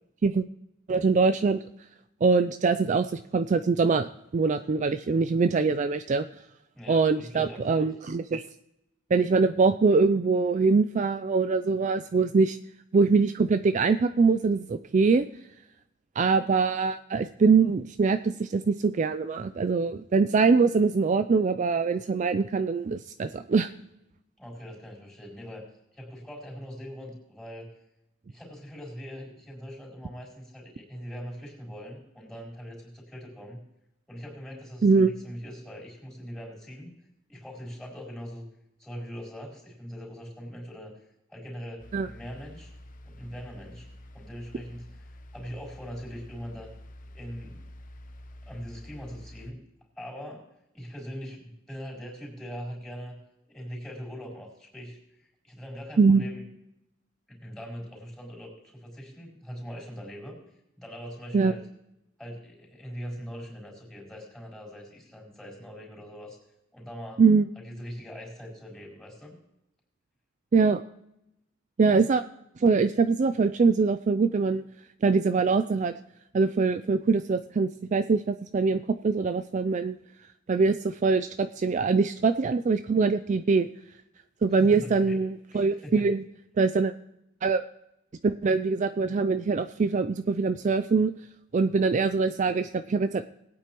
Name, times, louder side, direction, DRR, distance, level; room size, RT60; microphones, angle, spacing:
voice 1, 0.9-1.6 2.2-6.3 6.9-8.4 9.1-12.6 12.9-15.3 16.2-23.7 34.8-35.1 41.9-42.1 56.0-56.3 61.3-61.5 67.2-67.5 70.5-70.8 71.8-72.2 72.6-74.6 75.0-75.9 76.3-80.0 80.5-83.7 84.4-86.2 86.6-86.9 87.4-87.6 88.2-91.1 91.5-93.2, right 4 dB, 40° right, 10 dB, 0.4 m, -23 dB
voice 2, 6.7-7.9 24.4-25.6 25.9-27.7 28.3-33.6 34.1-36.9 37.3-38.5 38.8-40.9 41.3-42.7 43.1-43.9 44.1-46.7 47.1-47.6 48.4-49.6 50.0-50.5 50.7-53.2 53.5-56.4 57.3-60.4 60.8-61.6 62.2-66.4 66.7-67.2 67.6-69.4 84.6-85.2 85.5-86.0, equal, 5° left, -2 dB, 4.1 m, -41 dB
sound 1, 41.8-49.5, left 1 dB, 45° left, 0.8 m, -48 dB
20.0 x 8.9 x 3.0 m, 0.83 s
head